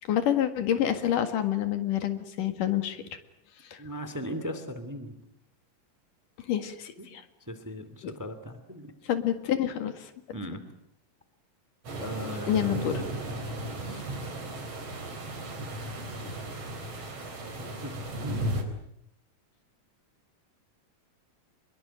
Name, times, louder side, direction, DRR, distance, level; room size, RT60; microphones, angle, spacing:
voice 1, 0.1-3.0 3.7-3.8 6.5-7.2 8.0-8.1 9.0-10.1 12.5-13.0 16.2-16.3, left 10 dB, 75° left, 9 dB, 3.4 m, -28 dB
voice 2, 3.8-5.1 7.0-7.1 7.5-8.9 10.3-10.6 11.9-12.8 13.5-14.0 17.8-17.9 18.2-18.4, equal, 5° right, 11 dB, 1.8 m, -38 dB
sound 1, 11.8-18.6, right 1 dB, 45° right, 5.1 m, -35 dB
25.5 x 22.5 x 9.1 m, 0.72 s
omnidirectional pair, 3.8 m